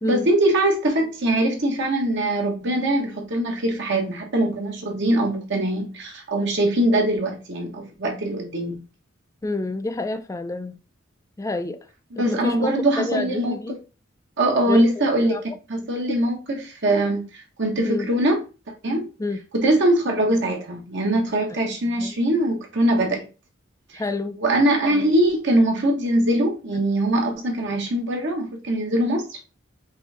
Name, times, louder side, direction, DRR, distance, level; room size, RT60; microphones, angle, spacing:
voice 1, 0.0-8.8 12.1-13.6 14.4-15.4 15.7-18.4 18.8-19.0 19.5-23.2 23.9-24.0 24.4-29.4, right 1 dB, 60° right, 1.2 m, -22 dB
voice 2, 9.4-10.8 11.4-11.8 12.2-13.8 14.7-15.0 15.3-15.4 16.1-16.2 17.8-18.1 19.2-19.4 21.9-22.2 23.9-24.4, left 2 dB, 15° left, 0.4 m, -28 dB
5.5 x 2.7 x 3.4 m
head